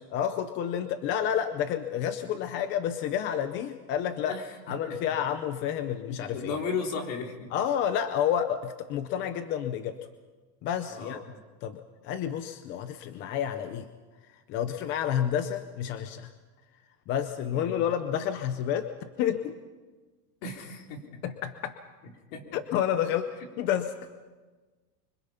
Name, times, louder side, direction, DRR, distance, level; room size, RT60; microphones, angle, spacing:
voice 1, 0.1-4.4 4.7-6.6 7.5-10.0 10.6-11.2 11.6-13.9 14.5-16.3 17.1-18.9 19.2-19.6 21.2-21.8 22.5-23.3 23.6-23.9, left 9 dB, 25° left, 9 dB, 0.6 m, -29 dB
voice 2, 6.1-7.5 10.9-11.2 17.5-17.9 20.4-21.0 22.3-22.6, left 4 dB, 50° left, 2 dB, 4.0 m, -35 dB
25.0 x 25.0 x 5.8 m, 1.3 s
supercardioid pair, 165°, 48 cm